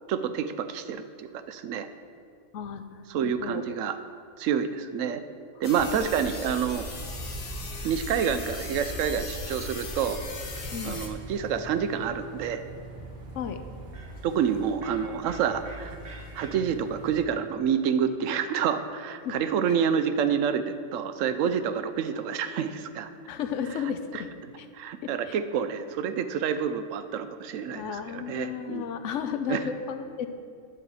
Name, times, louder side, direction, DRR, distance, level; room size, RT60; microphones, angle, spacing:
voice 1, 0.1-1.9 3.1-4.0 4.4-5.2 5.6-6.8 7.8-10.2 10.8-12.6 14.2-16.0 16.3-23.1 24.7-28.9 29.5-29.6, right 7 dB, 80° right, 10 dB, 1.0 m, -28 dB
voice 2, 2.5-3.6 5.9-6.1 10.7-11.1 13.3-13.6 19.2-19.4 23.3-24.3 24.6-24.7 25.0-25.4 27.7-30.3, left 7 dB, 75° left, 8 dB, 1.0 m, -34 dB
sound 1, 5.6-11.1, left 2 dB, 45° left, 1.1 m, -37 dB
sound 2, 6.9-17.3, right 2 dB, 50° right, 1.3 m, -43 dB
9.7 x 4.9 x 7.0 m, 2.3 s
omnidirectional pair, 1.3 m